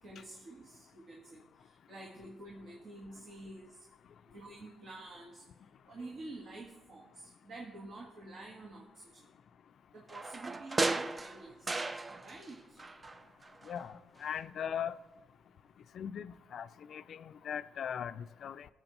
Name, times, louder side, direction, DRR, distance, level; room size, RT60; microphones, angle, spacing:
voice 1, 0.0-3.8 4.3-5.4 5.9-9.3 9.9-11.8 12.2-12.8, right 2 dB, 60° right, 1.5 m, -49 dB
sound 1, 10.1-12.5 12.8-13.9 14.2-14.3, right 3 dB, 25° right, 0.4 m, -36 dB
voice 2, 13.7-14.9 15.9-18.7, left 8 dB, 60° left, 0.4 m, -39 dB
18.5 x 7.1 x 3.0 m
cardioid pair, 90°, 0 cm